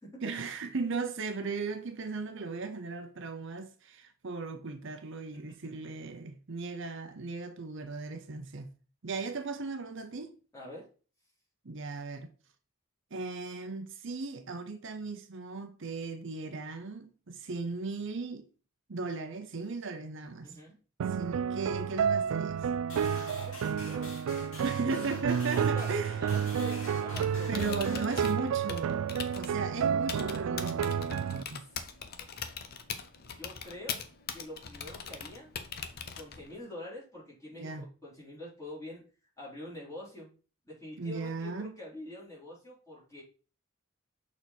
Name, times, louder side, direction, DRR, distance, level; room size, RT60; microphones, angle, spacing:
voice 1, 0.2-8.7 9.0-10.3 11.6-12.3 13.1-18.5 18.9-20.6 21.1-22.7 24.6-26.2 27.5-29.0 29.3-31.6 37.6-37.9 41.0-41.7, right 4 dB, 60° right, 0.7 m, -37 dB
voice 2, 10.5-10.9 20.4-20.8 23.4-24.2 24.8-24.9 25.5-25.9 26.2-28.8 31.6-31.7 32.2-32.3 33.4-34.1 34.3-35.5 36.1-39.0 39.4-40.3 40.6-43.2, left 1 dB, 15° left, 3.6 m, -45 dB
sound 1, 21.0-31.4, right 7 dB, 85° right, 0.3 m, -31 dB
sound 2, 22.9-28.3, left 2 dB, 75° left, 2.3 m, -47 dB
Typing, 27.0-36.6, left 6 dB, 45° left, 0.7 m, -42 dB
6.4 x 4.1 x 4.1 m
head